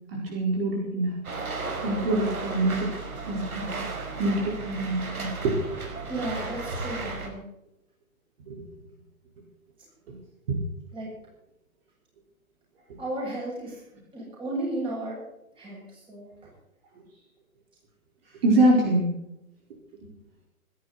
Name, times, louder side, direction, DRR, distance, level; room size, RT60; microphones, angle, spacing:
voice 1, 0.1-1.2 1.8-2.9 3.2-3.8 4.2-5.5 8.5-8.6 10.1-10.2 10.5-10.6 18.4-19.1, right 2 dB, 40° right, -1 dB, 4.8 m, -25 dB
sound 1, 1.2-7.3, right 3 dB, 85° right, 4.8 m, -35 dB
voice 2, 6.1-7.5 10.9-11.1 13.0-13.8 14.1-15.2 15.6-16.5, right 1 dB, 10° right, -3 dB, 7.6 m, -34 dB
25.0 x 11.5 x 4.2 m, 0.85 s
hypercardioid pair, 155°, 43 cm